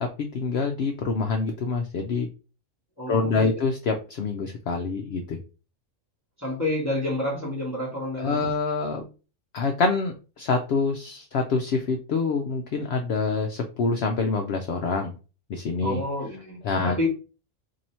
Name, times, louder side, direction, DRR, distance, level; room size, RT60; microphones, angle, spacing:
voice 1, 0.0-2.3 3.1-5.4 8.2-9.0 9.5-15.2 15.5-16.0 16.6-17.1, left 4 dB, 65° left, 3 dB, 0.7 m, -26 dB
voice 2, 3.0-3.5 6.4-8.5 15.8-17.1, left 1 dB, 15° left, -4 dB, 1.1 m, -29 dB
2.8 x 2.7 x 4.2 m, 0.34 s
omnidirectional pair, 1.4 m